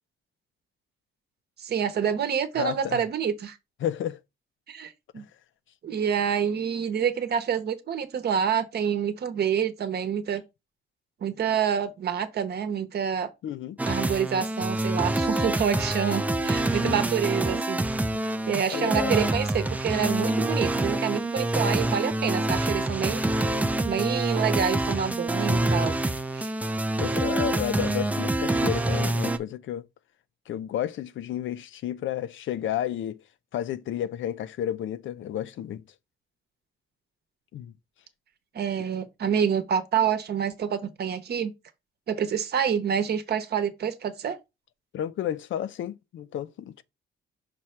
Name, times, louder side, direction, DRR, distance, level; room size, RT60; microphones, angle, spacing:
voice 1, 1.6-3.6 4.7-5.2 5.8-10.4 11.2-13.3 13.9-17.8 18.5-23.2 23.8-25.9 26.3-26.5 38.5-41.5 42.1-44.4, right 8 dB, 55° right, 0.9 m, -27 dB
voice 2, 2.6-3.0 3.8-4.2 5.1-5.2 13.4-13.8 16.8-17.0 18.7-19.1 27.0-29.8 30.5-33.2 33.5-35.8 37.5-37.7 44.9-46.8, left 10 dB, 70° left, 0.6 m, -31 dB
sound 1, 13.8-29.4, right 1 dB, 5° right, 0.5 m, -26 dB
6.0 x 3.2 x 5.7 m
wide cardioid pair, 155°, 20 cm